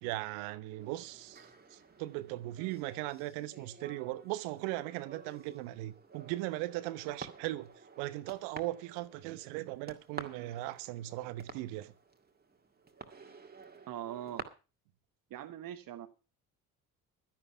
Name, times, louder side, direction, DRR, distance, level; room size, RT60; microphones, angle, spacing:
voice 1, 0.0-7.7 8.0-11.9, right 17 dB, 65° right, 1.0 m, -38 dB
sound 1, 0.8-14.4, right 4 dB, 20° right, 2.0 m, -51 dB
voice 2, 13.9-14.4 15.3-16.1, right 11 dB, 50° right, 1.2 m, -41 dB
12.5 x 10.5 x 5.7 m
figure-of-eight pair, 50°, 44 cm